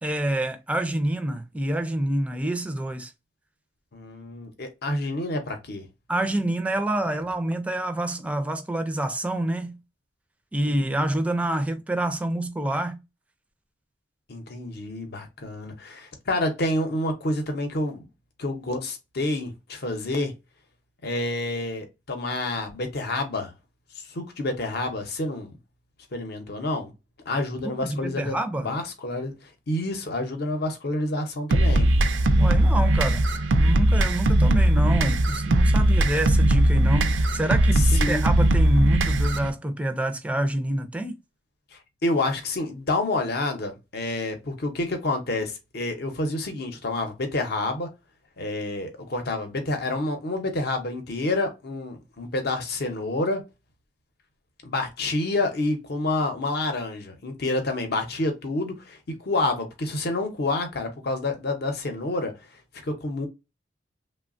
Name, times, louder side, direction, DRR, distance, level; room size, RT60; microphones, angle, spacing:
voice 1, 0.0-3.1 6.1-9.8 10.5-13.0 27.6-28.7 32.4-33.3 33.5-41.2, right 1 dB, 10° right, 0.4 m, -27 dB
voice 2, 3.9-5.9 10.7-10.9 14.3-18.1 18.4-20.3 21.0-23.5 24.0-25.5 26.1-26.9 27.3-31.9 37.8-38.3 42.0-47.9 48.4-53.4 54.6-62.3 62.8-63.3, left 2 dB, 60° left, 0.7 m, -28 dB
sound 1, 31.5-39.5, right 1 dB, 90° right, 0.4 m, -20 dB
3.1 x 2.1 x 2.4 m
head